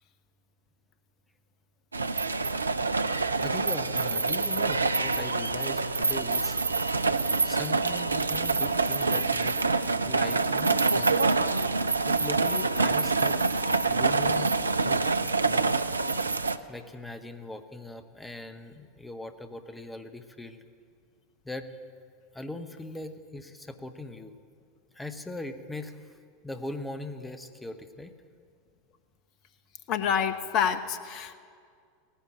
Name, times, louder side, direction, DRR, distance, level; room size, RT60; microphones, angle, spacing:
sound 1, 1.9-16.6, right 3 dB, 80° right, 0.4 m, -26 dB
voice 1, 3.4-6.6 7.4-9.6 10.0-11.3 12.0-13.5 13.8-14.5 14.8-15.1 15.4-15.8 16.7-20.6 21.4-21.7 22.3-24.3 24.9-26.2 26.4-28.1, left 2 dB, 5° left, 8 dB, 1.0 m, -40 dB
voice 2, 29.9-31.3, left 8 dB, 45° left, 10 dB, 0.9 m, -27 dB
17.5 x 10.0 x 7.3 m, 2.1 s
figure-of-eight pair, 85°, 0 cm